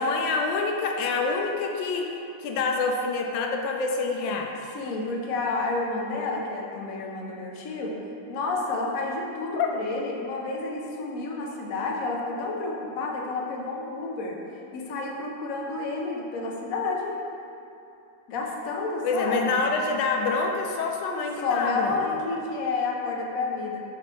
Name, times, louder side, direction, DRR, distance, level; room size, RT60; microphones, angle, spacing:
voice 1, 0.0-4.7 9.6-9.7 19.0-22.0, left 4 dB, 85° left, 3 dB, 1.3 m, -27 dB
voice 2, 4.7-8.0 8.3-14.4 14.7-17.2 18.3-19.6 21.4-23.8, left 3 dB, 60° left, -1 dB, 1.0 m, -30 dB
5.0 x 4.2 x 5.3 m, 2.7 s
omnidirectional pair, 2.0 m